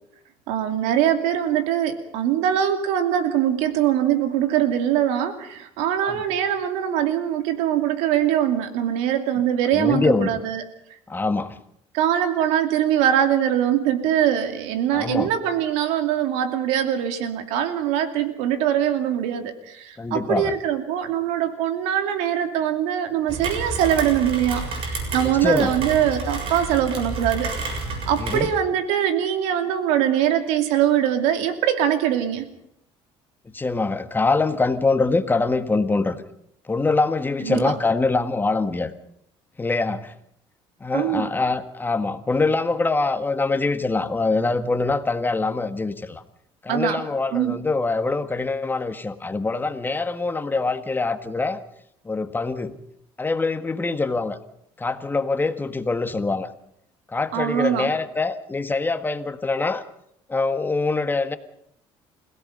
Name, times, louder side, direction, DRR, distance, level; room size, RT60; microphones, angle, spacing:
voice 1, 0.5-10.6 11.9-27.5 28.1-32.5 37.4-37.7 40.9-41.3 46.7-47.0 47.3-47.6 57.3-57.9, right 10 dB, 85° right, 8 dB, 2.5 m, -22 dB
voice 2, 9.7-10.3 11.1-11.6 14.9-15.3 20.0-20.5 25.2-25.7 28.2-28.5 33.5-36.2 36.7-38.9 39.6-40.1 40.8-46.2 46.6-51.6 52.0-52.8 53.2-54.4 54.8-56.5 57.1-59.8 60.3-61.4, left 3 dB, 20° left, 10 dB, 1.6 m, -24 dB
Rain, 23.3-28.5, right 3 dB, 60° right, 7.1 m, -30 dB
29.5 x 17.0 x 5.4 m, 0.73 s
supercardioid pair, 95°, 11 cm